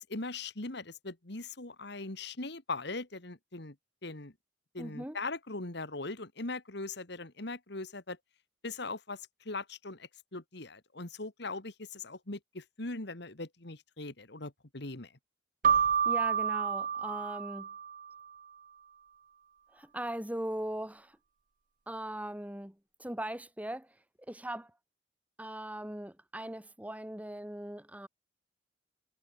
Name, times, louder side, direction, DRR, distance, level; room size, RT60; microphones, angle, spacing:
voice 1, 0.1-3.8 4.0-4.3 4.7-8.2 8.6-15.1, left 3 dB, 65° left, 2.3 m, -40 dB
voice 2, 4.8-5.2 16.0-17.7 19.7-21.2 21.9-24.0 24.3-24.7 25.4-28.1, right 1 dB, 10° right, 1.7 m, -39 dB
Keyboard (musical), 15.6-18.2, right 7 dB, 45° right, 0.8 m, -29 dB
head